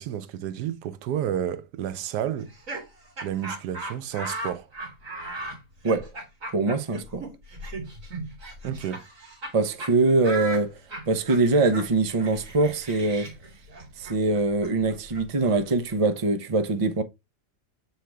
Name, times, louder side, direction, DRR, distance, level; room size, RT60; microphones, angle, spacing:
voice 1, 0.0-2.5 3.2-4.7 8.6-9.0, right 10 dB, 90° right, 1.3 m, -31 dB
Laughter, 2.4-9.5 9.8-9.9 10.2-16.0, right 2 dB, 55° right, 3.0 m, -38 dB
voice 2, 6.5-7.3 9.5-10.8 11.1-13.3 14.0-17.0, right 3 dB, 30° right, 0.6 m, -23 dB
7.5 x 4.7 x 3.4 m
omnidirectional pair, 1.7 m